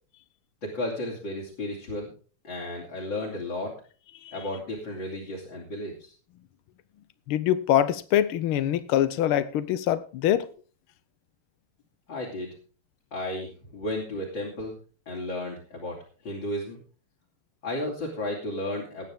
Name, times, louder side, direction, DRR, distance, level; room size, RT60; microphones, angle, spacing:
voice 1, 0.6-2.1 2.4-3.7 4.3-6.1 12.1-12.5 13.1-14.8 15.1-16.0 16.2-16.8 17.6-19.1, left 1 dB, 60° left, 3.7 m, -33 dB
voice 2, 7.3-10.5, left 11 dB, 85° left, 1.7 m, -24 dB
19.5 x 9.3 x 3.6 m
omnidirectional pair, 2.3 m